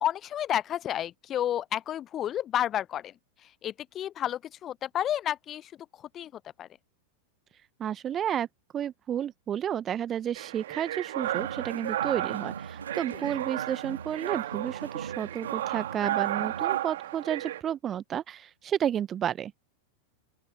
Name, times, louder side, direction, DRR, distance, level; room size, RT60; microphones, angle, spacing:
voice 1, 0.0-3.1 3.6-5.7 6.1-6.3 6.6-6.7 13.1-13.2, left 11 dB, 30° left, 0.4 m, -30 dB
voice 2, 7.8-8.5 8.7-19.5, right 9 dB, 25° right, 1.2 m, -31 dB
sound 1, 10.3-17.6, right 13 dB, 55° right, 2.1 m, -33 dB
sound 2, 11.2-16.8, right 5 dB, 75° right, 3.2 m, -41 dB
open air
figure-of-eight pair, 90°, 0 cm